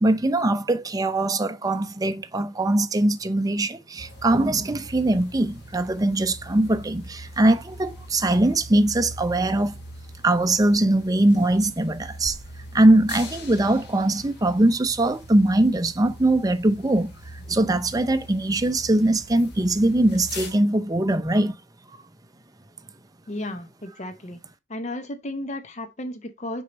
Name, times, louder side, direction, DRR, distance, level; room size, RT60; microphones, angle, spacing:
voice 1, 0.0-9.7 10.2-12.4 12.7-17.1 17.5-21.5, right 1 dB, 20° right, 0.6 m, -21 dB
sound 1, 4.0-20.5, equal, 55° left, 1.7 m, -42 dB
voice 2, 23.3-24.4 24.7-26.6, left 1 dB, 35° left, 0.7 m, -33 dB
6.3 x 4.6 x 4.0 m
head